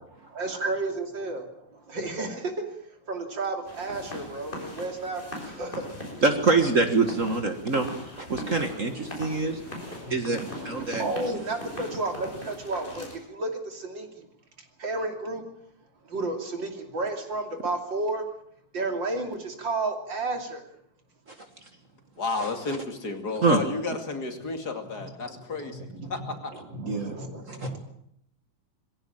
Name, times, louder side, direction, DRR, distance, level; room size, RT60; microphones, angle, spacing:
voice 1, 0.4-1.5 1.9-2.5 3.1-5.2 5.6-5.8 8.9-9.0 9.4-9.5 9.8-14.1 14.8-15.4 16.1-18.2 18.7-20.6 25.0-25.1 25.7-27.8, right 2 dB, 65° right, 5 dB, 3.6 m, -32 dB
sound 1, 3.7-13.2, left 1 dB, 25° left, 6.4 m, -40 dB
voice 2, 6.2-9.6 10.1-11.1 21.3-21.4 22.4-22.5 23.4-23.6 26.8-27.2 27.5-27.7, right 3 dB, 40° right, 7 dB, 1.9 m, -25 dB
voice 3, 22.2-26.5, left 3 dB, 50° left, 6 dB, 2.9 m, -32 dB
21.5 x 16.5 x 8.9 m, 0.71 s
omnidirectional pair, 2.2 m